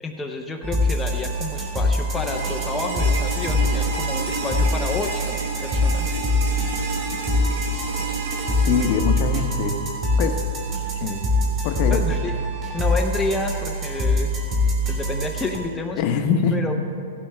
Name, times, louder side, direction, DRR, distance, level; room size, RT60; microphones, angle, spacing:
voice 1, 0.0-6.1 11.9-12.3 12.7-14.3 14.9-16.0 16.5-16.7, left 2 dB, 5° left, 0 dB, 0.6 m, -29 dB
sound 1, 0.6-15.6, left 1 dB, 30° right, 2.4 m, -24 dB
sound 2, 2.2-10.1, right 3 dB, 80° right, 1.9 m, -31 dB
voice 2, 8.6-9.8 10.2-10.4 10.9-11.2 11.6-12.1 16.0-16.7, left 6 dB, 40° left, 6 dB, 0.8 m, -23 dB
15.5 x 8.8 x 3.3 m, 2.6 s
hypercardioid pair, 155°, 0 cm